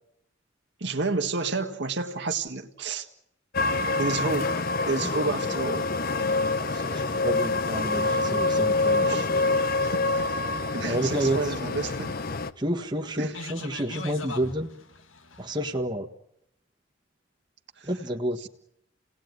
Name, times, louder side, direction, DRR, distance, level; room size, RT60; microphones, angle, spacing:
voice 1, 0.8-3.1 3.9-4.5 4.9-5.9 9.0-9.3 9.8-10.4 10.7-12.1 13.2-13.3 17.8-17.9 18.4-18.5, right 3 dB, 60° right, 5 dB, 1.7 m, -30 dB
sound 1, 3.5-12.5, left 3 dB, 45° left, 1.0 m, -26 dB
voice 2, 5.0-5.4 6.7-9.4 10.9-11.9 12.6-14.7 15.4-16.1 17.8-18.5, right 1 dB, 20° right, 1 dB, 1.6 m, -30 dB
sound 2, 11.9-15.7, left 3 dB, 85° left, 1.9 m, -42 dB
29.0 x 18.5 x 9.5 m, 0.79 s
head